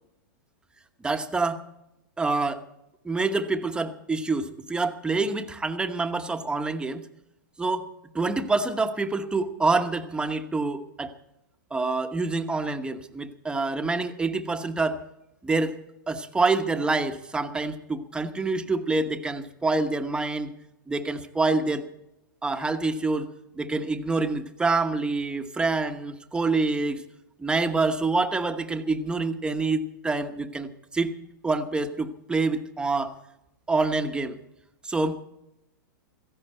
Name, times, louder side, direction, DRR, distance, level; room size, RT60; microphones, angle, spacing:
voice 1, 1.0-1.6 2.2-2.6 3.0-7.0 7.6-7.9 8.1-11.1 11.7-15.0 15.4-15.8 16.1-20.5 20.9-21.9 22.4-23.3 23.6-27.0 27.4-31.1 31.4-33.2 33.7-34.4 34.8-35.2, right 3 dB, 10° right, 7 dB, 1.1 m, -26 dB
17.0 x 15.0 x 4.4 m, 0.85 s
hypercardioid pair, 120°, 11 cm